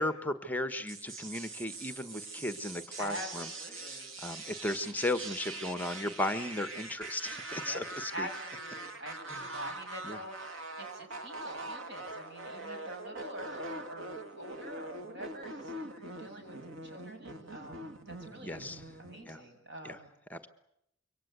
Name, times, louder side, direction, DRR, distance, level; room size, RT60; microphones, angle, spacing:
voice 1, 0.0-8.3 9.3-9.4 10.0-10.2 18.4-18.8 19.3-19.4 19.8-20.0 20.3-20.5, left 1 dB, 10° left, 10 dB, 1.2 m, -36 dB
sound 1, 0.9-19.3, right 2 dB, 90° right, 2.6 m, -43 dB
voice 2, 3.0-3.3 3.6-4.1 7.6-7.8 8.1-16.6 16.8-18.6 19.0-20.1, equal, 65° right, 4 dB, 7.6 m, -45 dB
26.5 x 24.0 x 8.1 m, 0.78 s
head